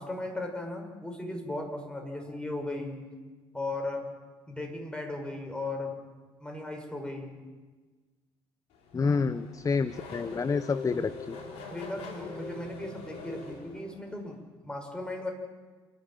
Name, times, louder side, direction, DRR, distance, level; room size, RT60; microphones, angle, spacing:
voice 1, 0.0-3.0 3.5-4.1 4.5-6.0 6.4-7.4 11.7-15.3, left 2 dB, 10° left, 3 dB, 6.3 m, -36 dB
Race car auto racing / Accelerating revving vroom, 8.7-14.3, left 4 dB, 70° left, 4.2 m, -43 dB
voice 2, 8.9-11.4, left 5 dB, 30° left, 13 dB, 0.8 m, -28 dB
28.0 x 12.0 x 9.2 m, 1.3 s
hypercardioid pair, 65°, 11 cm